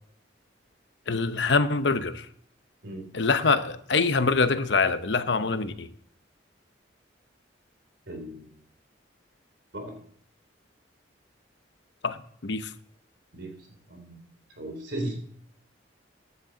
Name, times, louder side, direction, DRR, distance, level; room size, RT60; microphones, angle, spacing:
voice 1, 1.1-2.3 3.1-5.9 12.0-12.2 12.4-12.7, left 4 dB, 65° left, 0.9 m, -24 dB
voice 2, 8.1-8.6 9.7-10.0 13.3-13.5 13.9-14.2 14.6-15.3, right 1 dB, 65° right, 3.3 m, -36 dB
15.0 x 10.5 x 4.0 m
head